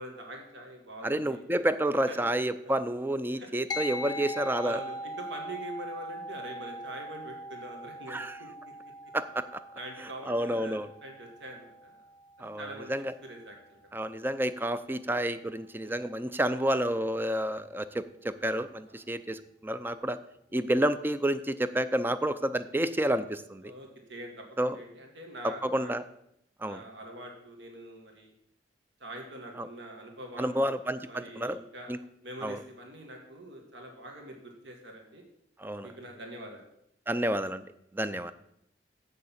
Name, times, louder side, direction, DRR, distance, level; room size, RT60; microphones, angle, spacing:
voice 1, 0.0-1.4 2.1-2.2 2.6-2.7 3.4-3.5 4.1-4.2 4.6-8.7 9.7-12.0 12.4-12.9 13.2-13.8 15.8-16.1 18.9-19.1 20.5-20.7 23.6-26.0 26.6-28.3 29.0-30.7 31.0-31.9 32.2-35.2 35.8-36.6, right 1 dB, 70° right, 2 dB, 1.9 m, -44 dB
voice 2, 1.0-4.8 8.1-8.4 9.1-9.6 10.2-10.9 12.4-13.1 13.9-20.2 20.5-23.7 24.6-24.8 25.4-26.0 26.6-26.8 29.6-29.7 30.4-31.6 31.9-32.0 32.4-32.6 35.6-35.9 37.1-37.6 37.9-38.3, right 1 dB, 10° right, 13 dB, 0.4 m, -30 dB
sound 1, 3.7-13.4, equal, 25° left, 0.8 m, -41 dB
7.7 x 6.7 x 7.3 m, 0.76 s
head